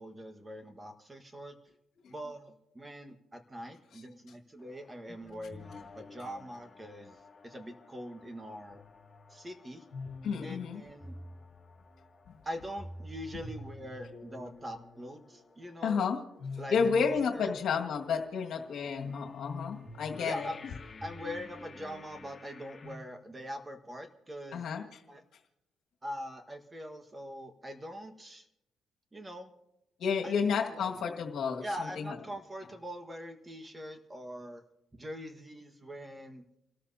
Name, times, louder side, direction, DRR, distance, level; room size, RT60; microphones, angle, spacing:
voice 1, 0.0-1.6 2.1-8.8 9.3-9.8 10.4-11.1 12.4-16.0 16.6-17.5 20.2-20.6 21.0-24.6 25.1-25.2 26.0-28.5 29.1-29.5 30.2-30.3 30.6-31.0 31.6-34.6 34.9-36.4, equal, 20° right, 7 dB, 1.5 m, -43 dB
sound 1, 4.6-23.0, left 3 dB, 30° left, 2.3 m, -48 dB
voice 2, 10.2-10.8 15.8-16.2 16.7-20.5 24.5-24.8 30.0-32.2, left 6 dB, 70° left, 2 dB, 1.9 m, -31 dB
29.5 x 13.5 x 2.8 m, 0.86 s
cardioid pair, 90°, 0 cm